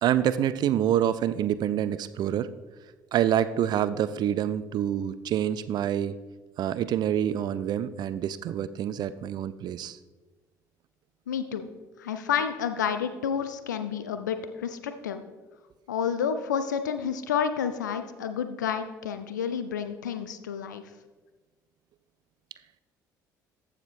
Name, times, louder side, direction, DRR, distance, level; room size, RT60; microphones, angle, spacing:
voice 1, 0.0-2.5 3.1-6.2 6.6-10.0, right 10 dB, 45° right, 15 dB, 0.4 m, -27 dB
voice 2, 11.3-11.7 12.0-15.2 15.9-20.8, left 7 dB, 80° left, 9 dB, 0.5 m, -30 dB
14.5 x 4.9 x 3.3 m, 1.3 s
figure-of-eight pair, 50°, 10 cm